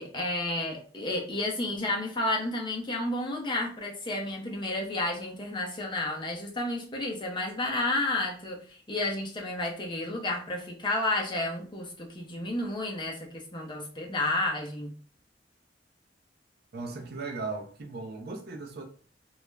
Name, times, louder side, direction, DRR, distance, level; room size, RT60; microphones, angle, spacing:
voice 1, 0.0-14.9, left 2 dB, 25° left, 0.6 m, -31 dB
voice 2, 16.7-18.8, right 3 dB, 60° right, 0.5 m, -37 dB
2.3 x 2.0 x 3.1 m
head